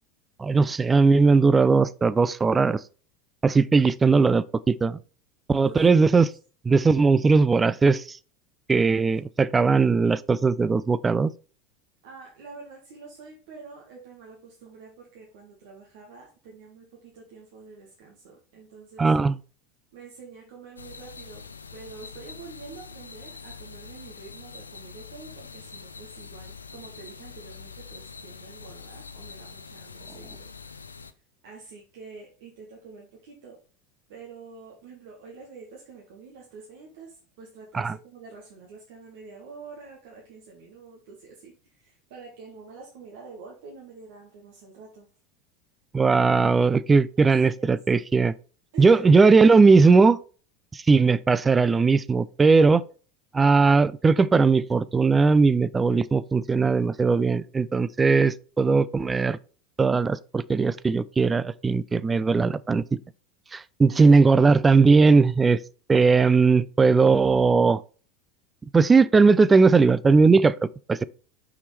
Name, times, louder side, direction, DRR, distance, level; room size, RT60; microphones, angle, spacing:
voice 1, 0.4-2.8 3.4-5.0 5.5-6.3 6.7-8.2 8.7-11.3 19.0-19.4 37.7-37.9 45.9-48.3 48.8-50.2 50.7-52.8 53.3-59.4 59.8-62.8 63.5-65.6 65.9-67.8 68.7-71.0, right 4 dB, 20° right, 0.4 m, -19 dB
voice 2, 5.6-6.3 12.0-19.1 19.9-21.5 21.7-30.9 31.4-33.6 34.1-45.1 47.2-47.8 48.7-49.1 63.9-64.2, right 4 dB, 60° right, 1.7 m, -47 dB
sound 1, 20.8-31.1, left 5 dB, 80° left, 0.5 m, -44 dB
6.1 x 5.9 x 3.3 m
figure-of-eight pair, 80°, 0 cm